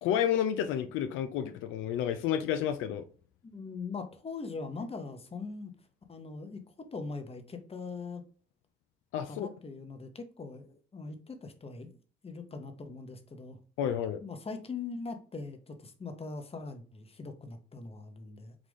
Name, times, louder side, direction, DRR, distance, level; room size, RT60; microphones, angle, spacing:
voice 1, 0.0-3.0 9.1-9.5 13.8-14.2, left 9 dB, 80° left, 0.4 m, -30 dB
voice 2, 3.4-5.7 6.1-8.2 9.2-11.9 12.2-13.6 14.2-18.5, left 4 dB, 30° left, 0.9 m, -41 dB
4.9 x 2.4 x 3.5 m
supercardioid pair, 60°, 21 cm